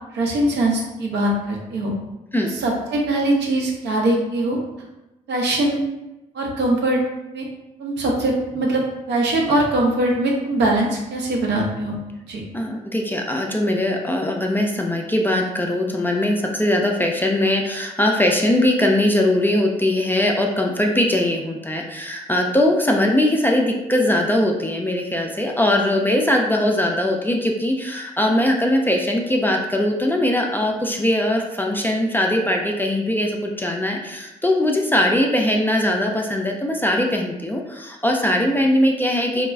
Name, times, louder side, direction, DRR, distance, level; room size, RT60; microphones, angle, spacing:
voice 1, 0.1-1.9 2.5-4.6 5.3-5.8 6.3-7.0 7.3-7.5 7.8-12.0 12.3-12.4, right 1 dB, 65° right, -1 dB, 0.7 m, -21 dB
voice 2, 12.5-39.5, left 1 dB, 10° left, 0 dB, 0.4 m, -20 dB
2.2 x 2.0 x 3.3 m, 0.99 s
hypercardioid pair, 45°, 19 cm